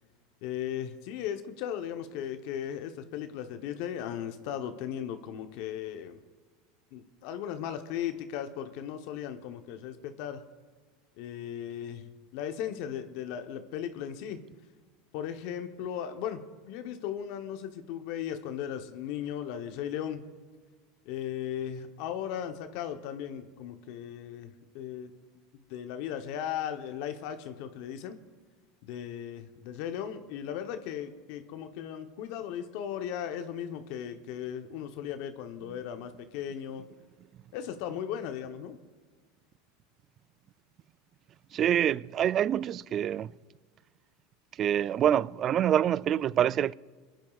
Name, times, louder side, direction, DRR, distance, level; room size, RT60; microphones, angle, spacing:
voice 1, 0.4-6.2 6.9-10.4 11.2-14.4 15.1-20.2 21.0-25.1 25.7-28.2 28.8-36.8 37.5-38.8, left 9 dB, 65° left, 0.9 m, -37 dB
voice 2, 41.5-43.3 44.6-46.7, right 10 dB, 40° right, 0.3 m, -26 dB
26.5 x 10.5 x 2.4 m
supercardioid pair, 110°, 0 cm